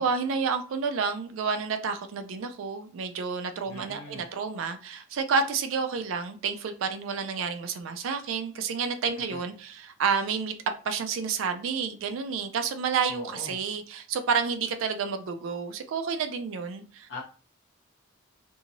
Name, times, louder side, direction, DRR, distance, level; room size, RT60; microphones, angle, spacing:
voice 1, 0.0-10.5 10.8-17.1, right 5 dB, 75° right, 8 dB, 0.3 m, -30 dB
voice 2, 3.7-4.3 9.2-9.4 13.1-13.6 17.1-17.2, left 2 dB, 65° left, -3 dB, 0.7 m, -41 dB
2.9 x 2.6 x 2.6 m, 0.38 s
head